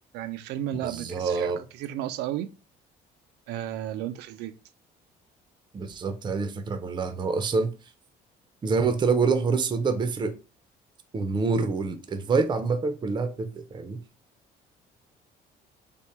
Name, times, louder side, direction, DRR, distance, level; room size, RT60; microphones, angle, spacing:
voice 1, 0.1-2.5 3.5-4.6, right 12 dB, 85° right, 0.4 m, -33 dB
voice 2, 0.8-1.6 5.7-7.7 8.6-10.4 11.1-14.0, right 4 dB, 25° right, 0.5 m, -26 dB
3.5 x 2.1 x 4.2 m
cardioid pair, 110°, 17 cm